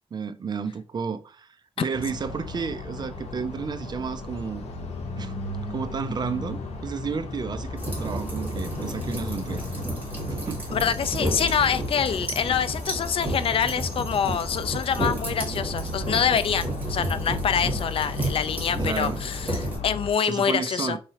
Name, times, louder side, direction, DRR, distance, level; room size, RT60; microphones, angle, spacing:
voice 1, 0.1-1.5 1.8-4.7 5.2-5.3 5.7-10.0 10.3-10.6 18.9-19.2 20.2-21.0, right 5 dB, 40° right, 0.4 m, -32 dB
sound 1, 1.9-20.1, left 2 dB, 90° left, 0.7 m, -35 dB
sound 2, 7.8-19.8, right 1 dB, 15° right, 2.2 m, -32 dB
voice 2, 10.7-21.0, left 7 dB, 60° left, 0.4 m, -26 dB
4.7 x 3.1 x 2.8 m
wide cardioid pair, 115°, 11 cm